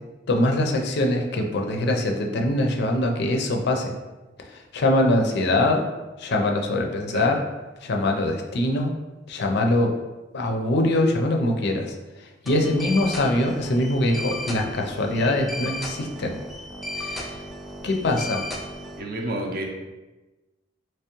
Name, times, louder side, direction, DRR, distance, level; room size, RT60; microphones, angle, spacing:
voice 1, 0.3-3.9 4.5-5.8 6.2-7.4 7.8-8.9 9.3-9.9 10.3-16.4 17.0-17.4 17.8-18.4, left 1 dB, 60° left, 3 dB, 0.5 m, -23 dB
sound 1, 12.5-19.0, left 1 dB, ahead, 0.4 m, -35 dB
voice 2, 19.0-19.6, right 1 dB, 50° right, 1 dB, 0.5 m, -29 dB
3.4 x 3.0 x 2.9 m, 1.1 s
head